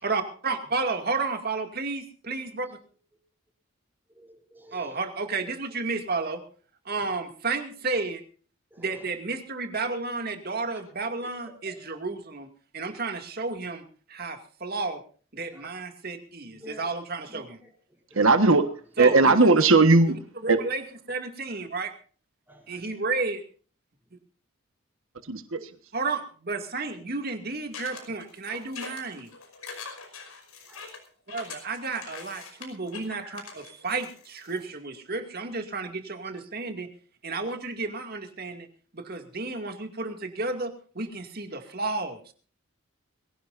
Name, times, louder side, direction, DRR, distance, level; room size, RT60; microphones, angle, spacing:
voice 1, 0.0-2.7 4.7-6.4 6.8-8.2 8.8-12.5 12.7-13.8 14.1-15.0 15.3-17.6 19.0-19.5 20.1-20.2 20.4-21.9 22.7-23.4 25.9-29.3 31.3-36.9 37.2-38.7 38.9-42.3, right 3 dB, 45° right, 5 dB, 2.4 m, -32 dB
voice 2, 4.1-5.0 6.9-7.1 8.7-9.0 11.2-11.8 12.8-12.9 15.4-15.7 16.6-16.9 17.3-18.3 22.5-23.0 30.7-30.8 33.2-33.4 37.3-37.5, right 1 dB, 10° right, 1 dB, 3.5 m, -50 dB
voice 3, 18.1-18.6 19.0-20.1 20.5-20.6 25.3-25.7, right 3 dB, 70° right, 8 dB, 1.5 m, -18 dB
sound 1, 27.7-34.6, left 5 dB, 85° left, 5.4 m, -43 dB
23.0 x 17.0 x 2.6 m, 0.41 s
head